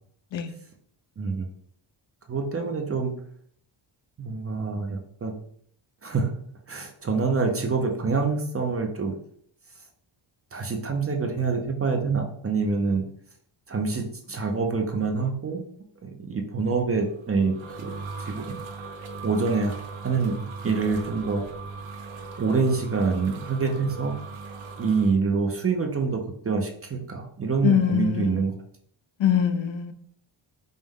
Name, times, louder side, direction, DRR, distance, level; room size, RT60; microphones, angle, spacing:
voice 1, 1.2-1.5 2.3-3.1 4.2-5.3 6.0-6.3 6.7-9.1 10.5-13.0 13.7-15.7 16.0-18.6 19.2-20.4 20.6-21.4 22.4-24.2 24.8-28.5, right 4 dB, 30° right, 3 dB, 0.4 m, -26 dB
sound 1, 17.1-25.1, right 4 dB, 70° right, 0.7 m, -39 dB
voice 2, 27.6-28.4 29.2-29.9, left 9 dB, 65° left, 9 dB, 0.6 m, -23 dB
5.3 x 2.1 x 3.5 m, 0.63 s
wide cardioid pair, 165°, 49 cm